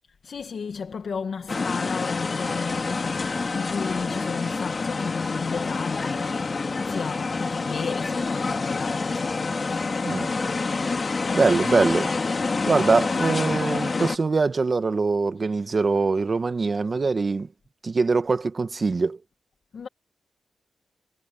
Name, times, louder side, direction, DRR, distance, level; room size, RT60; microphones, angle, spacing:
voice 1, 0.2-10.0 10.3-10.7 11.3-11.9 19.7-19.9, left 5 dB, 60° left, 2.1 m, -34 dB
sound 1, 1.5-14.2, left 4 dB, 40° left, 2.6 m, -27 dB
voice 2, 11.3-12.1 12.7-17.5 17.8-19.2, right 4 dB, 40° right, 1.7 m, -23 dB
wide cardioid pair, 110°, 0 cm